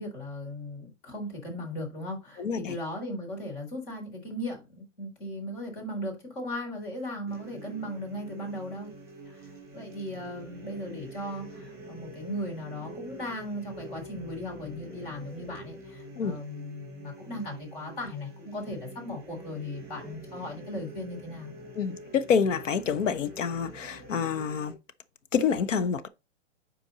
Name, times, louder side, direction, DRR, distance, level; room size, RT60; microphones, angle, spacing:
voice 1, 0.0-8.9 9.3-21.5, left 1 dB, 45° left, 4.0 m, -37 dB
voice 2, 2.4-2.8 16.2-16.4 21.8-24.8 25.3-26.1, left 6 dB, 85° left, 1.0 m, -27 dB
sound 1, 7.3-24.7, right 1 dB, 10° right, 2.8 m, -46 dB
8.4 x 4.5 x 4.0 m
hypercardioid pair, 170°, 37 cm